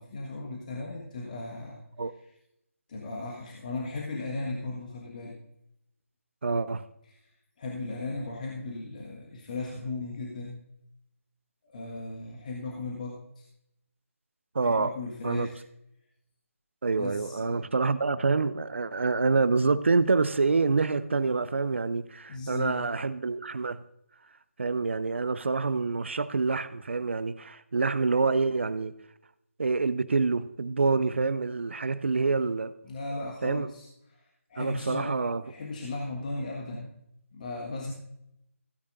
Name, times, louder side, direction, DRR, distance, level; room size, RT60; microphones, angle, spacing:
voice 1, 0.0-1.8 2.9-5.4 7.0-7.3 7.6-10.6 11.6-13.4 14.6-15.6 17.0-17.7 22.3-22.9 32.8-34.2 34.5-35.1 35.4-36.9 37.3-37.9, left 2 dB, 35° left, 1.5 m, -36 dB
voice 2, 6.4-6.8 14.5-14.9 15.2-15.5 16.8-23.8 24.6-28.9 29.6-32.7 33.4-33.7 34.6-35.4, right 4 dB, 55° right, 0.6 m, -27 dB
16.0 x 10.0 x 2.6 m
figure-of-eight pair, 155°, 8 cm